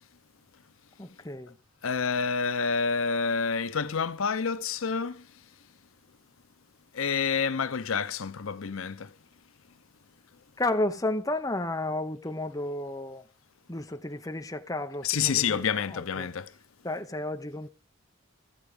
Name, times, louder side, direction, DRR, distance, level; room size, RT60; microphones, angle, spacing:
voice 1, 1.0-1.6 10.6-13.2 13.7-15.6 15.9-16.3 16.8-17.7, left 2 dB, 15° left, 0.8 m, -32 dB
voice 2, 1.8-5.3 6.9-9.1 15.0-16.5, left 6 dB, 80° left, 0.7 m, -28 dB
14.5 x 7.9 x 4.9 m
head